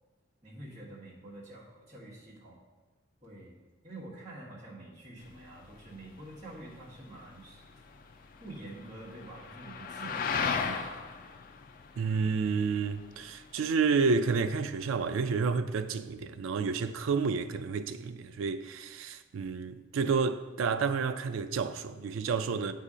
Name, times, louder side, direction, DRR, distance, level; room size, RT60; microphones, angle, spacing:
voice 1, 0.4-2.6 3.2-7.6 8.4-10.9, right 1 dB, 35° right, 1.4 m, -47 dB
sound 1, 5.2-15.1, left 5 dB, 45° left, 0.3 m, -38 dB
voice 2, 12.0-22.7, right 5 dB, 85° right, 0.4 m, -30 dB
8.1 x 2.8 x 4.9 m
head